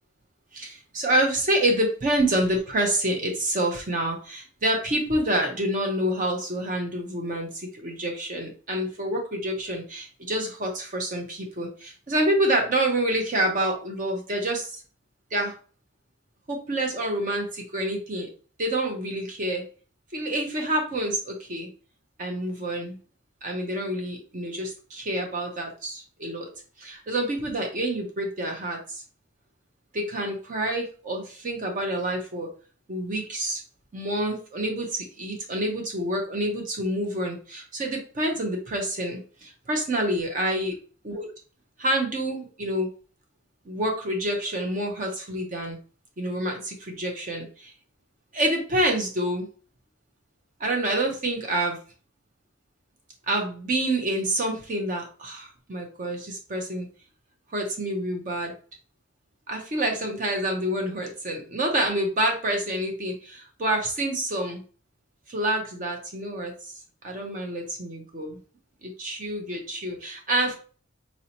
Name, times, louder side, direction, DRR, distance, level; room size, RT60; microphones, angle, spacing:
voice 1, 0.5-14.8 15.3-15.5 16.5-18.3 18.6-19.6 20.1-21.7 22.2-23.0 23.4-26.5 26.8-29.0 29.9-32.5 32.9-33.6 33.9-40.8 41.0-41.3 41.8-42.9 43.7-45.8 46.2-47.7 48.3-49.5 50.6-51.8 53.3-56.9 57.5-58.5 59.5-64.6 65.3-66.5 67.0-68.4 68.8-70.6, right 1 dB, 40° right, 2 dB, 0.6 m, -27 dB
4.1 x 2.7 x 2.8 m, 0.39 s
head